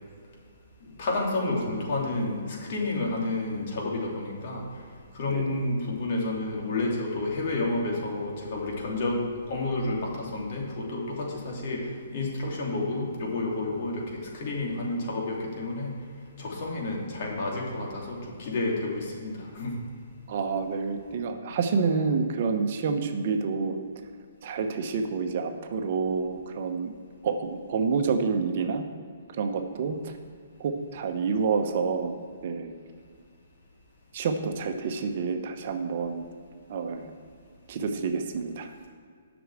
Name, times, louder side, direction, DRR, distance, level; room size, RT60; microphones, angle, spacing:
voice 1, 0.8-4.8 5.1-9.2 9.5-16.1 16.4-19.8, left 2 dB, 50° left, -2 dB, 2.8 m, -30 dB
voice 2, 5.3-5.6 20.3-23.8 24.4-26.9 27.2-28.9 29.4-30.1 30.6-32.7 34.1-36.3 36.7-37.1 37.7-38.7, right 5 dB, 50° right, 6 dB, 0.9 m, -28 dB
8.0 x 6.2 x 7.7 m, 2.1 s
hypercardioid pair, 135°, 0 cm